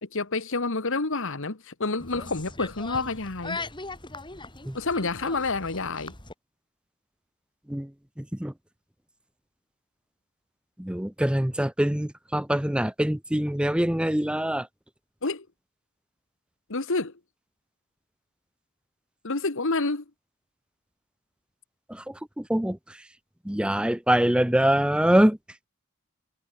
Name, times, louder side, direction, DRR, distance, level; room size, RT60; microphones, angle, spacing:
voice 1, 0.0-3.6 4.7-6.1 15.2-15.5 16.7-17.1 19.2-20.0, left 3 dB, 60° left, 1.6 m, -28 dB
sound 1, 2.0-6.3, left 3 dB, 20° left, 4.2 m, -39 dB
voice 2, 8.2-8.5 10.8-14.7 21.9-22.8 23.5-25.4, right 1 dB, 5° right, 0.6 m, -24 dB
head